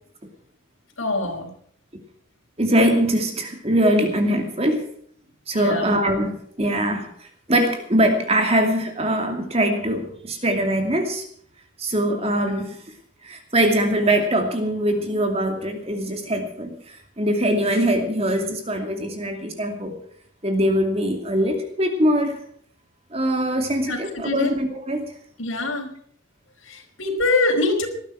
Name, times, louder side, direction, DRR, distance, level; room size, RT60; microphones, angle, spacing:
voice 1, 1.0-1.5 5.5-5.8 23.9-24.0 24.2-24.5 25.4-25.9 26.7-27.9, left 2 dB, 75° left, 3 dB, 4.9 m, -23 dB
voice 2, 2.6-4.9 5.5-11.2 11.8-12.8 13.2-20.0 20.4-22.4 23.1-25.1, right 1 dB, 30° right, 5 dB, 2.6 m, -22 dB
19.5 x 12.5 x 4.7 m, 0.62 s
head